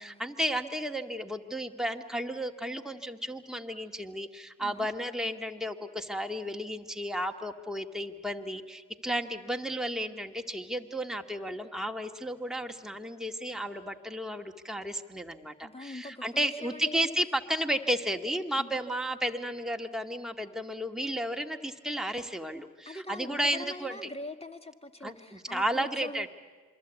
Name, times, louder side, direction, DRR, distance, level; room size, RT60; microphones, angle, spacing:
voice 1, 0.0-24.1 25.0-26.3, right 1 dB, ahead, 4 dB, 2.1 m, -33 dB
voice 2, 15.6-17.1 18.6-18.8 22.9-26.3, left 2 dB, 20° left, 7 dB, 2.2 m, -43 dB
27.5 x 23.0 x 8.4 m, 1.5 s
hypercardioid pair, 50°, 34 cm